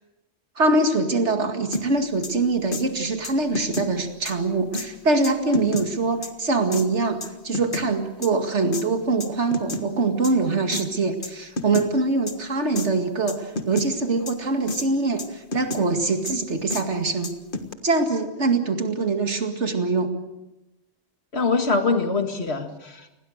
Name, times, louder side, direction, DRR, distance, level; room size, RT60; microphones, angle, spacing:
voice 1, 0.6-17.3 17.8-20.1, right 3 dB, 80° right, 6 dB, 2.4 m, -23 dB
sound 1, 1.7-1.8 2.2-2.3 2.7-2.8 3.2-3.9 4.3-4.4 4.7-4.9 5.2-5.8 6.2-6.3 6.7-6.8 7.2-7.9 8.2-8.3 8.7-8.8 9.2-9.8 10.2-10.3 10.7-10.8 11.2-11.3 11.6-11.9 12.3-12.4 12.8-12.9 13.3-13.9 14.3-14.4 14.7-14.9 15.2-15.8 16.2-16.3 16.7-16.8 17.2-17.7, left 2 dB, 50° left, 1.8 m, -30 dB
voice 2, 21.3-23.1, left 3 dB, 65° left, 6 dB, 2.3 m, -24 dB
29.0 x 20.5 x 6.5 m, 0.98 s
omnidirectional pair, 1.2 m